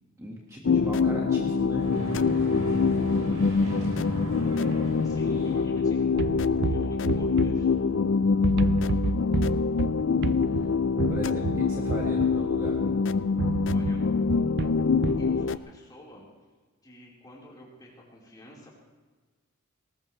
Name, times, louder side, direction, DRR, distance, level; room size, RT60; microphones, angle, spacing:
voice 1, 0.2-1.9 5.2-5.7 10.5-10.7 11.1-12.9, equal, 15° right, -3 dB, 1.7 m, -37 dB
sound 1, 0.6-15.6, left 5 dB, 55° left, 0.4 m, -25 dB
sound 2, 1.8-6.0, left 1 dB, 90° right, 4.7 m, -34 dB
voice 2, 5.0-6.1 6.7-7.7 13.7-14.0 15.1-16.3 16.8-18.7, left 1 dB, 20° left, -4 dB, 4.2 m, -50 dB
sound 3, 6.2-8.1 8.4-12.9 13.4-15.3, right 5 dB, 50° right, 0.4 m, -31 dB
20.0 x 18.5 x 3.3 m, 1.3 s
head